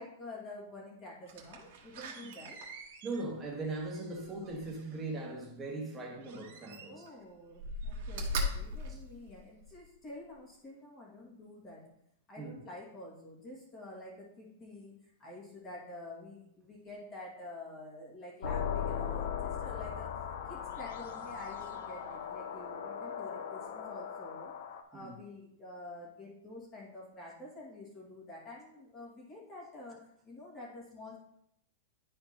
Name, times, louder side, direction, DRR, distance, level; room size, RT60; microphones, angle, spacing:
voice 1, 0.0-2.6 6.9-11.9 12.3-14.9 15.2-24.5 24.9-31.2, left 2 dB, 15° left, -4 dB, 2.0 m, -48 dB
Slam, 1.3-5.1 6.2-7.2 7.5-9.8 10.3-10.4, equal, 45° right, 1.3 m, -40 dB
voice 2, 3.0-7.1 8.9-9.0 12.4-12.6 24.9-25.2, right 2 dB, 10° right, -2 dB, 1.3 m, -39 dB
sound 1, 18.4-24.8, left 8 dB, 55° left, 0.6 m, -38 dB
11.0 x 4.3 x 2.9 m, 0.73 s
supercardioid pair, 175°, 0 cm